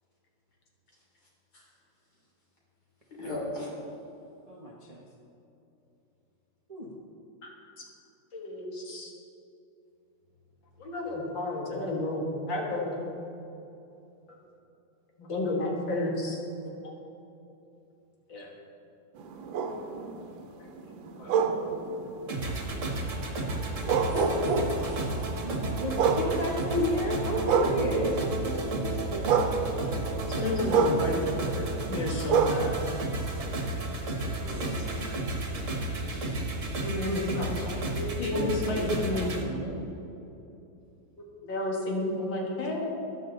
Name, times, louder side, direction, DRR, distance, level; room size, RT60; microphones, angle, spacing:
voice 1, 3.2-3.7 24.1-25.3 34.4-34.9 36.1-36.4, left 1 dB, 55° left, -4 dB, 3.8 m, -35 dB
voice 2, 4.5-5.0 6.7-6.9 25.4-28.2 38.3-39.9, equal, 25° right, -2 dB, 0.9 m, -32 dB
voice 3, 8.3-9.1 10.8-13.1 15.2-16.4 16.8-16.9 18.3-18.5 21.2-21.5 30.4-32.9 35.6-35.7 36.8-39.3 41.4-42.9, left 2 dB, 75° left, -1 dB, 2.3 m, -32 dB
sound 1, 19.2-28.4 28.7-34.0 34.5-38.0, right 5 dB, 80° right, 1.6 m, -30 dB
sound 2, 22.3-39.4, right 2 dB, 45° right, 1.7 m, -32 dB
14.0 x 11.0 x 3.9 m, 2.8 s
omnidirectional pair, 2.1 m